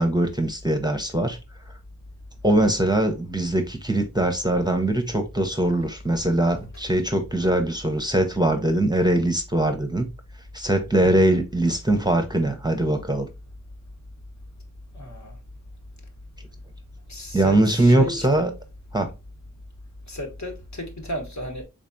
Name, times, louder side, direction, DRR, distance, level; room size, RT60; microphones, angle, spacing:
voice 1, 0.0-1.4 2.4-10.1 10.5-13.3 17.3-18.5 18.9-19.1, right 1 dB, 15° right, 0.7 m, -22 dB
voice 2, 14.9-15.4 17.1-18.5 20.1-21.6, left 1 dB, 55° left, 1.1 m, -34 dB
3.7 x 3.3 x 2.5 m
wide cardioid pair, 50°, 33 cm